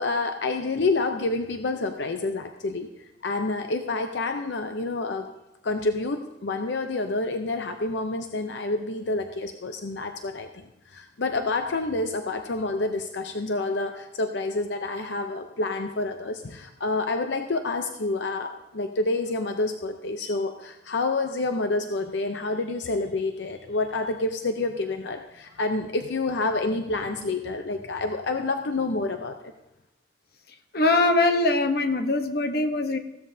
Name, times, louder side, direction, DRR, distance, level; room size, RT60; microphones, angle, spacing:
voice 1, 0.0-5.3 5.6-29.5, left 3 dB, 75° left, 6 dB, 0.7 m, -28 dB
voice 2, 30.7-33.0, left 2 dB, 55° left, 7 dB, 0.9 m, -22 dB
16.0 x 13.0 x 2.7 m, 0.88 s
head